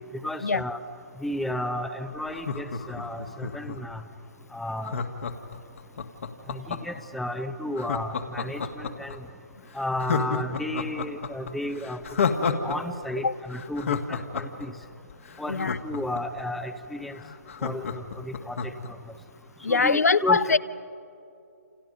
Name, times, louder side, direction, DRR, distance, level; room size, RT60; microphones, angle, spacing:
voice 1, 0.1-0.8 1.2-4.0 4.5-5.0 6.5-9.3 9.7-12.3 12.6-14.7 15.4-17.2 17.6-19.0 19.7-20.6, left 1 dB, ahead, 10 dB, 0.7 m, -33 dB
Laughter, 2.3-4.0 4.8-7.0 7.8-9.2 9.5-9.6 10.0-12.8 13.0-13.1 13.5-16.4 16.8-16.9 17.2-18.9 19.3-19.4, left 5 dB, 55° left, 1.9 m, -30 dB
voice 2, 19.6-20.6, left 4 dB, 70° left, 17 dB, 0.7 m, -22 dB
29.0 x 28.5 x 5.3 m, 2.7 s
figure-of-eight pair, 140°, 9 cm